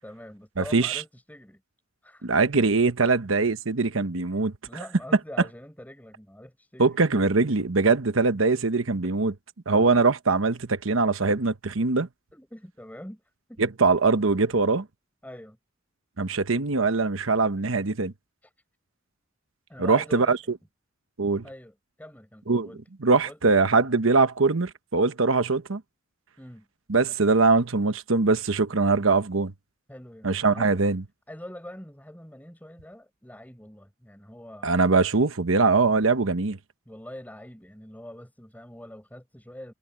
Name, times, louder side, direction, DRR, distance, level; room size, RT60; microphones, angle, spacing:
voice 1, 0.0-1.6 2.0-2.6 3.0-3.1 4.2-7.2 9.7-10.0 12.3-13.2 13.5-13.6 15.2-15.6 18.4-18.5 19.7-20.4 21.4-22.8 23.2-23.4 26.4-26.7 29.9-30.8 31.3-34.9 36.9-39.7, left 1 dB, 10° left, 7.8 m, -44 dB
voice 2, 0.6-1.0 2.2-4.5 6.8-9.3 9.7-12.1 13.6-14.9 16.2-18.1 19.8-20.4 21.2-21.4 22.5-22.7 23.0-25.8 26.9-29.5 30.2-31.0 34.6-36.6, right 3 dB, 75° right, 1.1 m, -22 dB
head